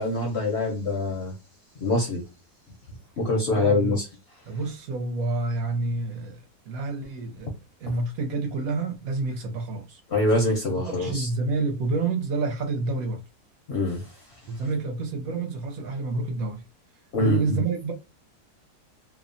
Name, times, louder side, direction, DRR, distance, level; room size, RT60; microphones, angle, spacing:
voice 1, 0.0-1.3 1.8-2.2 3.2-4.0 10.1-11.3 13.7-14.0 17.1-17.6, left 2 dB, 55° left, 0.7 m, -24 dB
voice 2, 3.5-4.0 4.5-7.5 7.8-10.0 10.7-13.2 14.5-16.6 17.2-17.9, right 3 dB, 70° right, 1.0 m, -29 dB
2.8 x 2.0 x 2.5 m
omnidirectional pair, 1.7 m